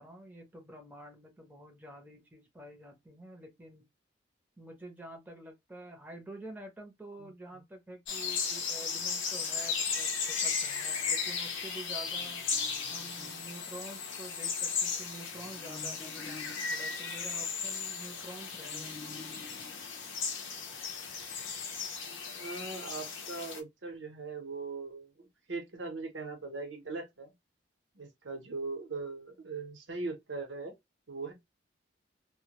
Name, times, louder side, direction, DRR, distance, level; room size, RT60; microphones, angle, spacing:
voice 1, 0.0-3.8 4.6-12.4 12.9-19.0, right 1 dB, 10° right, 0.6 m, -48 dB
sound 1, 8.1-23.6, left 5 dB, 90° left, 0.5 m, -36 dB
sound 2, 12.0-14.2 15.3-18.0 18.5-20.8, left 3 dB, 40° left, 0.4 m, -52 dB
voice 2, 22.3-27.3 27.9-30.7 31.1-31.3, right 3 dB, 80° right, 0.8 m, -40 dB
2.1 x 2.1 x 2.8 m
head